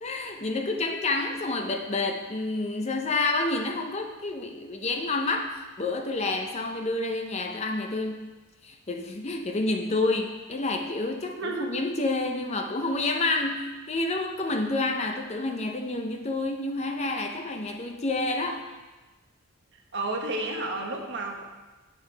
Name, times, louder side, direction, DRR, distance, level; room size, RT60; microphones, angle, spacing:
voice 1, 0.0-8.3 8.6-18.7, left 2 dB, 30° left, 4 dB, 0.6 m, -29 dB
voice 2, 11.4-11.7 19.9-21.4, right 2 dB, 55° right, 1 dB, 1.1 m, -31 dB
8.6 x 5.7 x 4.5 m, 1.2 s
head